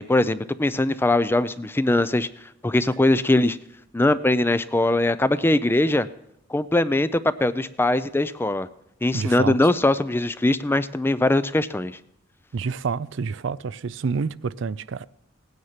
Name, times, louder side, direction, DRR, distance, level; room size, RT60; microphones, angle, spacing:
voice 1, 0.0-2.3 2.6-3.6 3.9-6.1 6.5-8.7 9.0-12.0, left 2 dB, 10° left, 0.4 m, -21 dB
voice 2, 9.1-9.6 12.5-15.1, right 5 dB, 70° right, 0.4 m, -28 dB
17.5 x 9.5 x 5.8 m
head